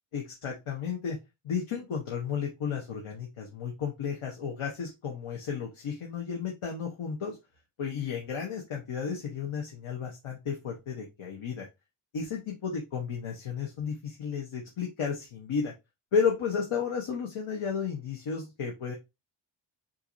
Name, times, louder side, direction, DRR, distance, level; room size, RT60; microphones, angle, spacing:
voice 1, 0.1-1.2 1.4-7.4 7.8-11.7 12.1-15.7 16.1-18.9, left 6 dB, 85° left, 0 dB, 1.1 m, -33 dB
5.8 x 2.8 x 2.6 m, 0.23 s
wide cardioid pair, 140°, 49 cm